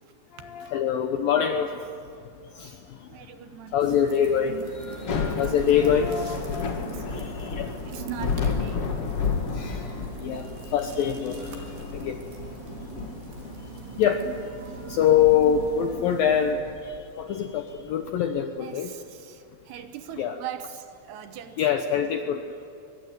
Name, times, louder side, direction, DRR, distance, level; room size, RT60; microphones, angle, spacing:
voice 1, 0.4-1.7 2.6-2.7 3.7-6.8 7.1-7.7 9.6-9.9 10.2-12.2 14.0-14.3 14.9-18.9 20.2-20.4 21.6-22.4, left 8 dB, 75° left, 6 dB, 2.1 m, -25 dB
voice 2, 3.1-3.9 5.5-5.8 6.8-7.4 7.9-8.9 18.6-21.7, right 10 dB, 75° right, 9 dB, 2.7 m, -41 dB
sound 1, 3.8-16.5, right 6 dB, 60° right, 4.9 m, -41 dB
Thunder / Rain, 4.9-18.0, left 5 dB, 50° left, 1.8 m, -33 dB
23.5 x 23.0 x 9.8 m, 2.5 s
omnidirectional pair, 5.4 m